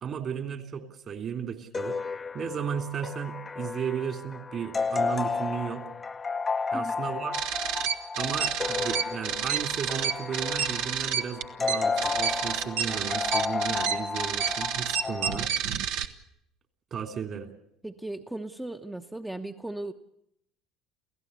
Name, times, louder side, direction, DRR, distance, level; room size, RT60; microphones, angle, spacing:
voice 1, 0.0-1.9 2.3-5.8 6.7-7.4 8.2-15.5 16.9-17.5, right 7 dB, 40° right, 6 dB, 3.1 m, -34 dB
sound 1, 1.7-15.5, left 4 dB, 25° left, 0.8 m, -32 dB
sound 2, 7.3-16.0, right 8 dB, 60° right, 1.2 m, -29 dB
voice 2, 17.8-19.9, right 2 dB, 5° right, 5 dB, 1.1 m, -37 dB
29.0 x 16.5 x 6.9 m, 0.76 s
figure-of-eight pair, 60°, 0 cm